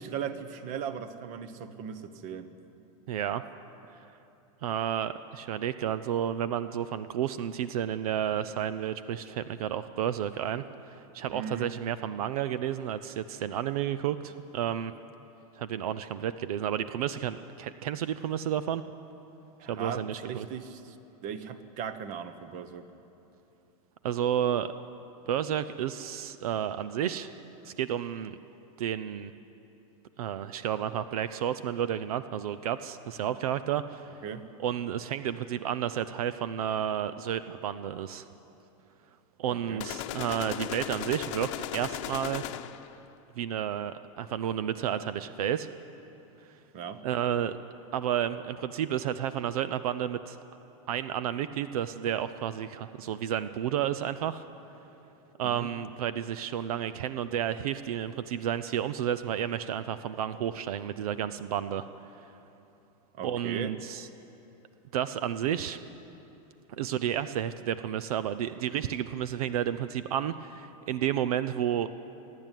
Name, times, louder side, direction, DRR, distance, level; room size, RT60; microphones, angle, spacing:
voice 1, 0.0-2.5 11.3-11.7 19.6-21.0 21.2-22.9 34.2-34.5 39.5-39.8 46.7-47.0 55.4-55.7 63.1-63.7, right 7 dB, 45° right, 11 dB, 1.2 m, -38 dB
voice 2, 3.1-3.4 4.6-10.6 10.9-14.9 15.6-18.8 19.7-20.5 24.0-24.7 25.3-27.3 27.6-28.4 28.8-29.3 30.2-34.2 34.6-38.3 39.4-42.4 43.4-45.7 47.0-47.6 47.9-50.4 50.9-54.4 55.4-61.9 63.2-64.1 64.9-65.8 66.7-71.9, right 10 dB, 85° right, 13 dB, 0.7 m, -31 dB
sound 1, 39.8-43.0, left 14 dB, 55° left, 0.9 m, -36 dB
27.0 x 11.0 x 9.2 m, 2.9 s
supercardioid pair, 145°, 18 cm